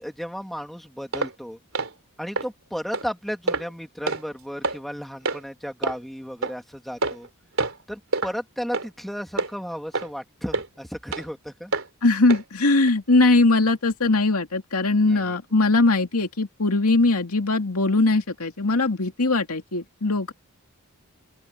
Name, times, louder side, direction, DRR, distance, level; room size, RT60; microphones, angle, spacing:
voice 1, 0.0-1.6 2.2-7.3 7.9-11.7 15.0-15.4, equal, ahead, 2.4 m, -34 dB
sound 1, 1.1-1.3 1.7-1.9 2.4-2.5 2.9-3.1 3.5-3.7 4.1-4.2 4.6-4.8 5.3-5.4 5.8-6.0 6.4-6.5 7.0-7.3 7.6-7.8 8.1-8.3 8.7-8.9 9.4-9.5 9.9-10.1 10.5-10.7 11.1-11.3 11.7-11.9 12.3-12.4 12.9-13.0, right 3 dB, 65° right, 3.5 m, -26 dB
voice 2, 12.0-20.3, left 2 dB, 85° left, 2.3 m, -20 dB
open air
head